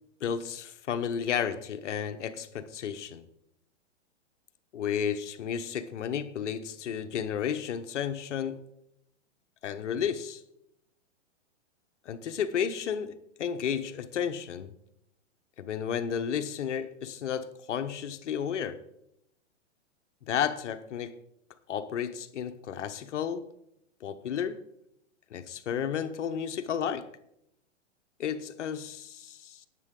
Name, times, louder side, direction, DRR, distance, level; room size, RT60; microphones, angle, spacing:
voice 1, 0.2-3.3 4.7-8.6 9.6-10.4 12.1-14.7 15.6-18.8 20.3-21.2 21.7-23.4 24.0-24.6 25.3-27.1 28.2-29.7, left 8 dB, 75° left, 1.1 m, -32 dB
18.5 x 7.7 x 3.7 m
hypercardioid pair, 130°, 36 cm